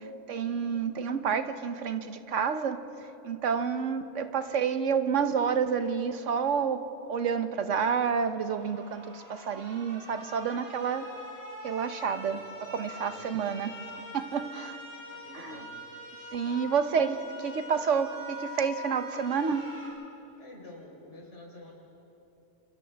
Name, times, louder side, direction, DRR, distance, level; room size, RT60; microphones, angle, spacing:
voice 1, 0.0-2.8 3.2-6.8 7.1-11.1 11.6-12.4 12.7-14.8 15.3-15.6 16.3-19.7, right 6 dB, 80° right, 9 dB, 1.3 m, -29 dB
sound 1, 8.3-19.9, left 1 dB, 10° right, 6.2 m, -44 dB
voice 2, 13.0-13.5 15.1-15.8 20.4-21.7, left 1 dB, 70° left, -2 dB, 4.8 m, -49 dB
29.0 x 27.0 x 3.5 m, 2.9 s
omnidirectional pair, 1.3 m